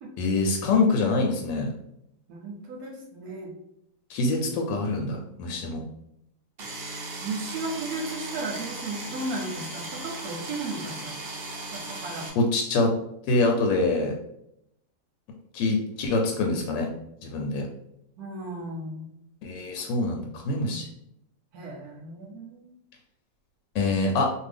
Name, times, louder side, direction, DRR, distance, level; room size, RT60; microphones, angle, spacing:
voice 1, 0.2-1.7 4.1-5.8 12.3-12.9 13.3-14.2 15.5-16.9 17.2-17.6 19.4-20.9 23.7-24.3, left 3 dB, 85° left, 1 dB, 1.2 m, -25 dB
voice 2, 2.3-3.5 7.2-11.2 11.7-12.3 18.2-19.1 21.5-22.6, right 2 dB, 70° right, 1 dB, 1.0 m, -35 dB
sound 1, 6.6-12.3, right 2 dB, 90° right, 0.5 m, -37 dB
2.6 x 2.6 x 3.3 m, 0.77 s
omnidirectional pair, 1.9 m